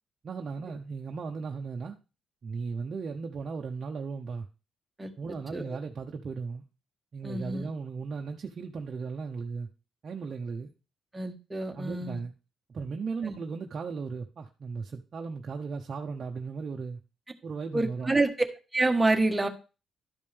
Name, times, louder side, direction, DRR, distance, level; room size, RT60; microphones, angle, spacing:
voice 1, 0.2-2.0 2.4-4.5 5.2-6.6 7.1-9.7 10.0-10.7 11.7-12.3 12.7-17.0 17.4-18.2, right 5 dB, 45° right, 0.8 m, -36 dB
voice 2, 7.2-7.7 11.1-12.2 13.2-13.4 17.7-18.3 18.7-19.5, right 2 dB, 15° right, 1.5 m, -27 dB
12.0 x 5.3 x 3.5 m
cardioid pair, 90°, 0 cm